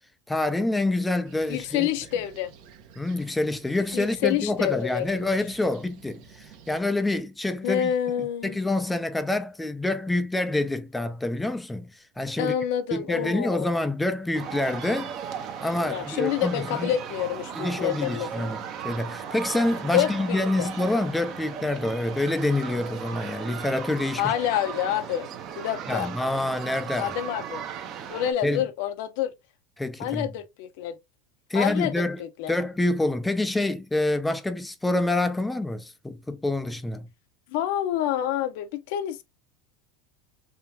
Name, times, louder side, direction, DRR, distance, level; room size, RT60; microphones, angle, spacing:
voice 1, 0.3-1.9 3.0-7.9 8.4-12.5 12.9-15.1 15.6-16.9 17.6-24.3 25.9-27.1 28.4-28.6 29.8-30.3 31.5-32.2 32.5-37.1, left 2 dB, 5° left, 0.5 m, -27 dB
Fixed-wing aircraft airplane, 1.2-6.8, right 7 dB, 60° right, 0.9 m, -50 dB
voice 2, 1.5-2.5 3.9-5.3 7.6-8.6 12.4-13.8 15.9-18.5 19.9-20.7 24.2-25.3 25.5-26.1 27.0-27.6 28.1-29.3 30.0-31.0 31.5-32.5 37.5-39.2, left 11 dB, 65° left, 0.8 m, -28 dB
sound 1, 14.3-28.3, right 8 dB, 40° right, 0.8 m, -36 dB
3.7 x 3.4 x 2.8 m
supercardioid pair, 145°, 0 cm